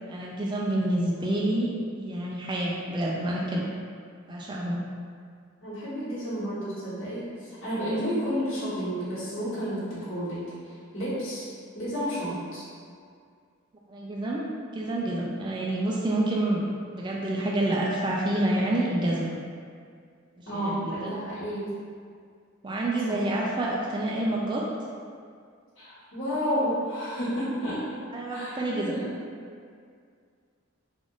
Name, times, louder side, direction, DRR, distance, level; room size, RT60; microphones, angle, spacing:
voice 1, 0.1-3.7 4.3-4.9 13.9-16.6 16.9-19.3 20.4-20.9 22.6-24.6 28.1-29.0, right 1 dB, 20° right, -4 dB, 0.3 m, -28 dB
voice 2, 5.6-11.5 11.7-12.6 20.5-21.7 23.0-23.2 25.8-28.0 28.3-29.1, equal, 70° left, -13 dB, 1.4 m, -31 dB
3.5 x 2.5 x 3.7 m, 2.2 s
head